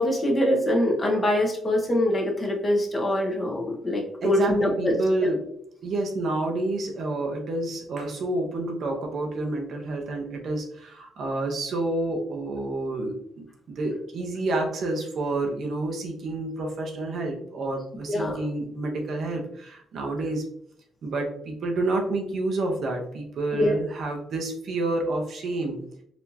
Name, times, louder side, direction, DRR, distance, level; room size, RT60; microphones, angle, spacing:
voice 1, 0.0-4.9 5.2-5.3 18.1-18.4 23.5-23.7, left 1 dB, 30° left, 0 dB, 1.1 m, -24 dB
voice 2, 4.2-5.4 5.8-20.5 21.0-25.8, right 2 dB, 60° right, 1 dB, 0.9 m, -29 dB
4.3 x 2.8 x 2.7 m, 0.69 s
cardioid pair, 90°, 0 cm